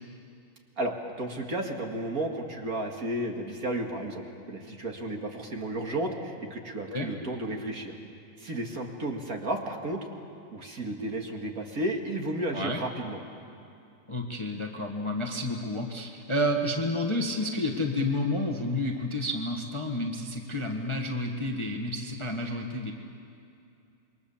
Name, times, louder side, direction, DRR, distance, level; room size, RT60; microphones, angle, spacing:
voice 1, 0.8-7.9 8.4-10.0 10.5-13.2, right 1 dB, 45° right, 2 dB, 2.3 m, -33 dB
voice 2, 14.1-22.9, left 1 dB, 15° left, 2 dB, 1.2 m, -30 dB
27.0 x 23.0 x 7.2 m, 2.6 s
omnidirectional pair, 2.2 m